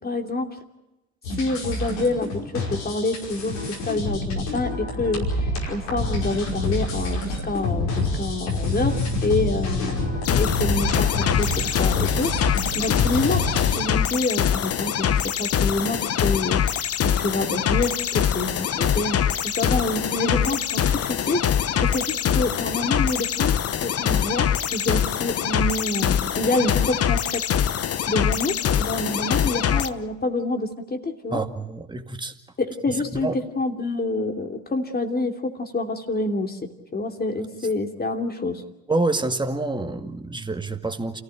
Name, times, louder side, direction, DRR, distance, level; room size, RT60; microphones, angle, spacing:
voice 1, 0.0-0.6 1.4-5.4 5.7-19.2 19.4-27.4 28.1-31.4 32.6-38.6, left 2 dB, 30° left, 4 dB, 2.9 m, -27 dB
sound 1, 1.2-13.8, left 2 dB, 85° left, 5.5 m, -27 dB
sound 2, 10.2-29.9, left 9 dB, 50° left, 1.1 m, -23 dB
voice 2, 31.3-32.3 33.1-33.3 38.9-41.2, right 2 dB, 15° right, 6 dB, 2.1 m, -27 dB
28.0 x 15.5 x 9.1 m, 0.95 s
hypercardioid pair, 65°, 32 cm